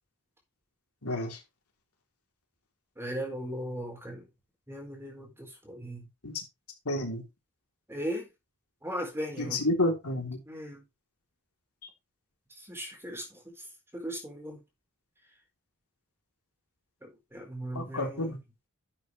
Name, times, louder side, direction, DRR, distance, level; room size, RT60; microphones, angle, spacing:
voice 1, 1.0-1.4 6.2-6.4 6.9-7.2 9.4-10.4 17.7-18.4, left 1 dB, 80° left, 3.5 m, -30 dB
voice 2, 3.0-4.2 4.7-6.0 7.9-8.3 8.8-9.6 10.5-10.8 12.7-13.4 13.9-14.6 17.0-18.4, equal, 10° right, 4.4 m, -37 dB
11.5 x 8.1 x 3.4 m
head